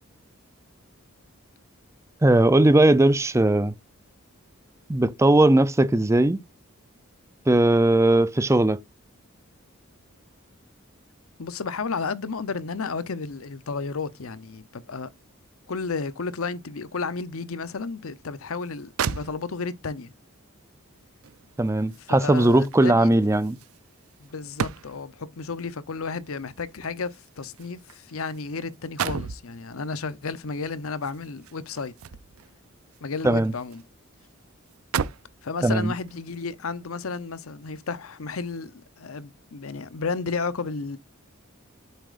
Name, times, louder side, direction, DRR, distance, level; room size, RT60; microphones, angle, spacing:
voice 1, 2.2-3.7 4.9-6.4 7.5-8.8 21.6-23.6 33.2-33.5 35.6-35.9, right 1 dB, 15° right, 0.5 m, -19 dB
voice 2, 11.4-15.1 15.7-20.1 22.0-23.1 24.2-31.9 33.0-33.8 35.4-41.0, left 4 dB, 80° left, 0.8 m, -32 dB
sound 1, 18.6-18.7 19.0-19.8 21.2-25.2 26.3-28.4 28.7-29.5 30.9-32.5 32.9-33.9 34.2-34.3 34.7-35.4 36.1-36.3, right 7 dB, 85° right, 0.5 m, -34 dB
8.3 x 7.6 x 2.5 m
head